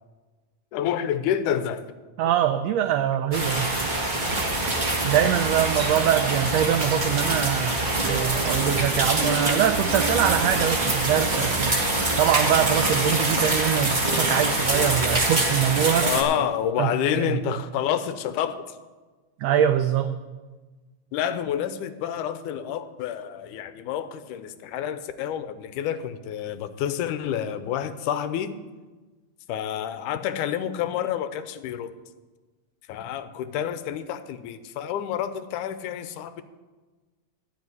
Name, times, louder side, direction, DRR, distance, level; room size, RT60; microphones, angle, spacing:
voice 1, 0.7-1.8 16.0-18.7 21.1-28.6 29.5-31.9 32.9-36.4, left 9 dB, 85° left, 12 dB, 2.1 m, -28 dB
voice 2, 2.2-3.8 5.0-11.8 12.2-16.1 16.8-17.4 19.4-20.2, right 10 dB, 85° right, 8 dB, 1.5 m, -23 dB
sound 1, 3.3-16.2, right 1 dB, 25° right, 1.1 m, -25 dB
sound 2, 4.2-15.2, right 4 dB, 60° right, 2.3 m, -35 dB
13.5 x 5.2 x 9.3 m, 1.3 s
omnidirectional pair, 3.6 m